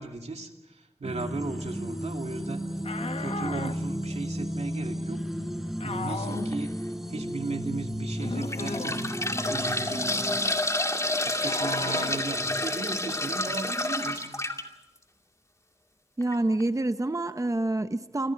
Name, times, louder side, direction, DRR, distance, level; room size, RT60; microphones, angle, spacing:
voice 1, 0.0-2.6 3.2-5.2 5.8-6.7 7.1-10.2 11.2-14.3, right 3 dB, 90° right, 4 dB, 2.5 m, -36 dB
sound 1, 1.0-10.5, equal, 5° right, 4.8 m, -34 dB
sound 2, 2.8-3.8 5.8-6.5 8.2-9.0 11.4-12.2, left 3 dB, 75° left, 1.2 m, -35 dB
sound 3, 6.3-6.5 7.2-7.3 8.2-14.6 16.2-16.3 16.6-16.7, left 1 dB, 30° left, 2.5 m, -29 dB
voice 2, 16.2-18.3, right 2 dB, 30° right, 9 dB, 1.0 m, -27 dB
28.5 x 26.5 x 4.6 m, 0.97 s
wide cardioid pair, 50°, 11 cm